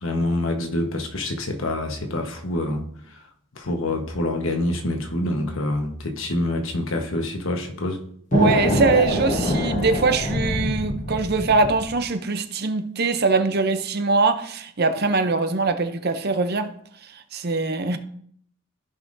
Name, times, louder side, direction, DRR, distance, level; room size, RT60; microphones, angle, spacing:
voice 1, 0.0-2.8 3.6-8.0, left 1 dB, 60° left, 1.2 m, -26 dB
sound 1, 8.3-12.0, left 1 dB, 35° left, 1.1 m, -24 dB
voice 2, 8.3-16.7 17.3-18.0, right 3 dB, 45° right, 0.6 m, -22 dB
14.5 x 5.8 x 2.6 m
head